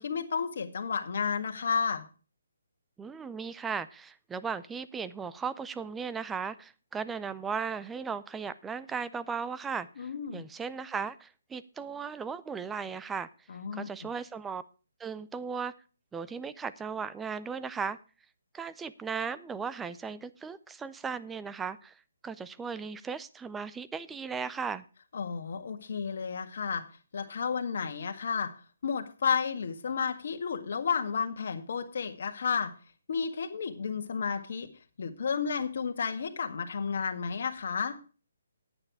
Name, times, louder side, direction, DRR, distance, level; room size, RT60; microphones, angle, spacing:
voice 1, 0.0-2.0 10.0-10.5 13.5-13.9 25.1-26.8 27.1-28.5 28.8-32.7 33.1-34.7 35.0-38.0, left 6 dB, 55° left, 6 dB, 1.8 m, -32 dB
voice 2, 3.0-13.3 13.7-14.6 15.0-15.7 16.1-18.0 18.5-21.9 22.2-24.8, right 6 dB, 5° right, 15 dB, 0.4 m, -36 dB
9.6 x 8.9 x 4.6 m, 0.35 s
hypercardioid pair, 165°, 0 cm